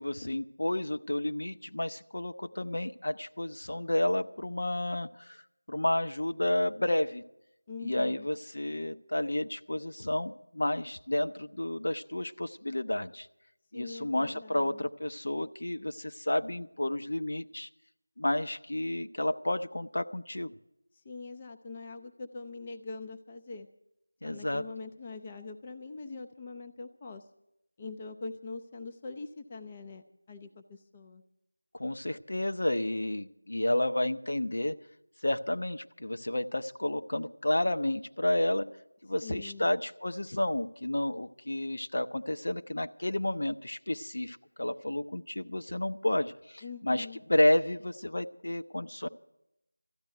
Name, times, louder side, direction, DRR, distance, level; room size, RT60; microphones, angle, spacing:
voice 1, 0.0-5.4 5.7-7.2 7.8-13.3 13.7-17.7 18.2-20.6 24.2-24.6 31.7-34.7 35.2-38.7 39.0-49.1, left 1 dB, 60° left, 9 dB, 0.7 m, -31 dB
voice 2, 7.7-8.3 13.7-14.8 20.9-23.7 24.2-27.3 27.8-31.2 39.2-39.7 46.6-47.2, left 3 dB, 15° left, 5 dB, 0.4 m, -43 dB
13.5 x 9.0 x 9.2 m, 0.84 s
figure-of-eight pair, 175°, 0 cm